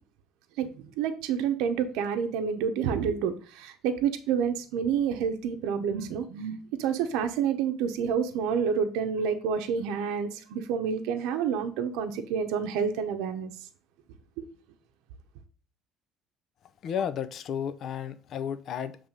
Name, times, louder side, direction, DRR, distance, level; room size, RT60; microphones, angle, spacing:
voice 1, 0.6-13.5 14.4-14.5, right 7 dB, 85° right, 0.7 m, -29 dB
voice 2, 16.8-19.0, left 8 dB, 45° left, 0.5 m, -32 dB
7.2 x 3.3 x 5.1 m
cardioid pair, 155°, 0 cm